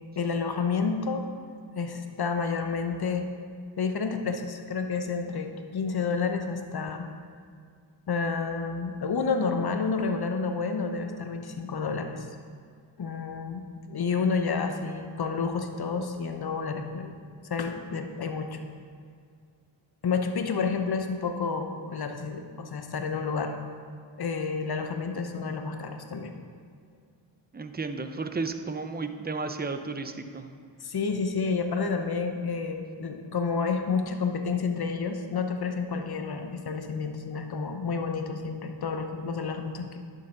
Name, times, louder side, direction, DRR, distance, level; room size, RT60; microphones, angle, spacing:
voice 1, 0.2-1.3 1.7-3.3 3.8-7.1 8.1-12.3 13.0-17.1 17.4-18.6 20.0-23.5 24.2-26.3 30.8-40.0, left 5 dB, 50° left, 5 dB, 1.0 m, -30 dB
voice 2, 27.5-30.5, right 3 dB, 20° right, 8 dB, 0.7 m, -33 dB
11.0 x 6.7 x 3.9 m, 2.1 s
cardioid pair, 60°, 50 cm